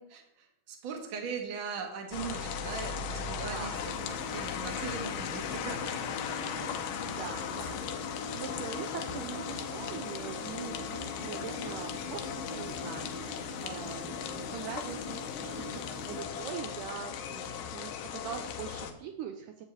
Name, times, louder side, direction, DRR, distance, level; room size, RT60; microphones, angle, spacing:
voice 1, 0.1-3.8 4.0-6.8, right 5 dB, 45° right, 3 dB, 1.7 m, -40 dB
sound 1, 2.1-18.9, left 7 dB, 80° left, 2.8 m, -38 dB
voice 2, 3.5-3.8 7.0-19.7, right 8 dB, 85° right, 5 dB, 1.9 m, -43 dB
sound 2, 3.7-16.2, left 2 dB, 20° left, 2.1 m, -43 dB
11.0 x 5.0 x 8.2 m, 0.76 s
omnidirectional pair, 4.5 m